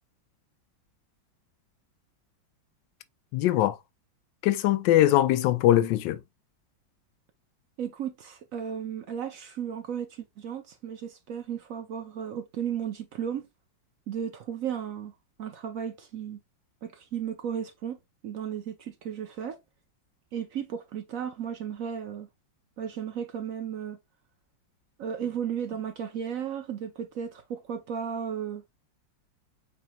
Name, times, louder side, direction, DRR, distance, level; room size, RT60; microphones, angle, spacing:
voice 1, 3.3-3.8 4.4-6.2, left 13 dB, 80° left, 1.2 m, -22 dB
voice 2, 7.8-13.5 14.1-15.1 15.4-16.4 16.8-18.0 18.2-19.6 20.3-22.3 22.8-24.0 25.0-28.6, right 8 dB, 65° right, 0.8 m, -34 dB
8.0 x 2.9 x 2.2 m
omnidirectional pair, 2.0 m